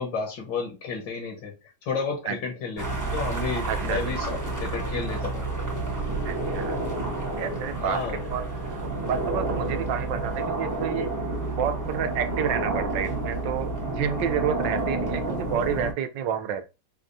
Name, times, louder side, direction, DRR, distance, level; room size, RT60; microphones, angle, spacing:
voice 1, 0.0-1.5 1.9-5.4 7.8-8.2, left 5 dB, 75° left, 1.7 m, -31 dB
sound 1, 2.8-15.9, right 2 dB, 20° right, 0.6 m, -30 dB
voice 2, 3.7-4.0 6.3-6.8 7.4-8.0 8.3-8.4 8.7-11.1 11.6-16.7, right 8 dB, 80° right, 1.3 m, -29 dB
4.9 x 2.3 x 2.6 m
omnidirectional pair, 2.0 m